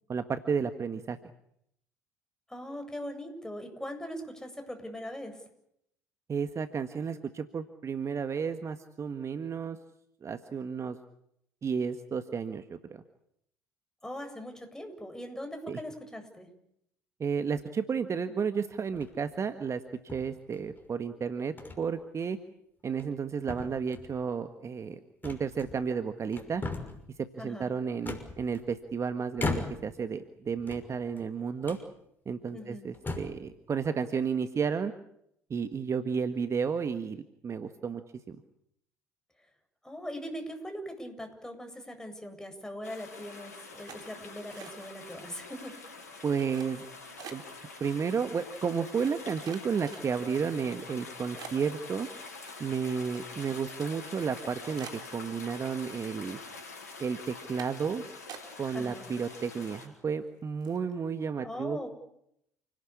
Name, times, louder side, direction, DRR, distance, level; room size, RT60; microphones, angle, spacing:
voice 1, 0.1-1.2 6.3-9.8 10.2-11.0 11.6-13.0 15.7-15.8 17.2-19.8 20.1-22.4 22.8-26.6 27.4-31.8 32.2-34.9 35.5-38.0 38.3-38.4 46.2-46.9 47.3-47.4 47.8-52.1 52.6-56.4 57.0-58.0 58.6-61.9, right 6 dB, 35° right, 9 dB, 1.6 m, -32 dB
voice 2, 2.5-5.4 14.0-16.5 27.4-27.7 32.5-32.9 39.8-45.7 58.7-59.1 61.4-61.9, equal, 5° left, 5 dB, 7.9 m, -40 dB
sound 1, 18.9-19.3 20.1-20.8 21.6-21.8 22.2-22.3 22.8-23.2 23.5-24.2 25.2-26.0 26.3-27.1 28.0-28.9 29.4-30.0 30.6-31.3 31.6-31.9 32.5-32.6 32.9-33.4, left 3 dB, 20° left, 6.1 m, -38 dB
sound 2, 42.8-59.9, left 4 dB, 80° left, 4.9 m, -46 dB
sound 3, 43.9-45.1 45.4-45.8 46.3-47.6 48.3-48.4 48.9-50.4 50.9-51.0 51.4-53.6 53.9-54.0 54.3-54.4 54.8-55.8 56.1-56.6 56.9-57.1 57.6-57.9 58.3-58.9 59.2-59.8 60.2-60.3 60.6-60.9, right 8 dB, 50° right, 4.0 m, -49 dB
29.5 x 18.0 x 8.6 m, 0.74 s
figure-of-eight pair, 60°, 9 cm